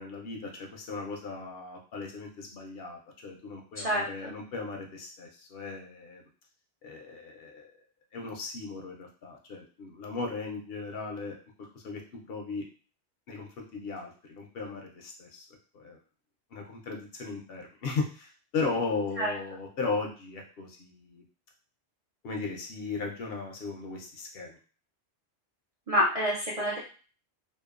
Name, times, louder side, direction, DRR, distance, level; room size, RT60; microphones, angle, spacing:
voice 1, 0.0-6.2 6.8-7.7 8.1-12.7 13.3-15.5 15.7-16.0 16.5-21.2 22.2-24.6, left 4 dB, 65° left, 1 dB, 0.7 m, -37 dB
voice 2, 3.8-4.3 19.2-19.3 25.9-26.8, equal, 55° right, -5 dB, 0.4 m, -27 dB
2.8 x 2.0 x 2.3 m, 0.38 s
omnidirectional pair, 1.2 m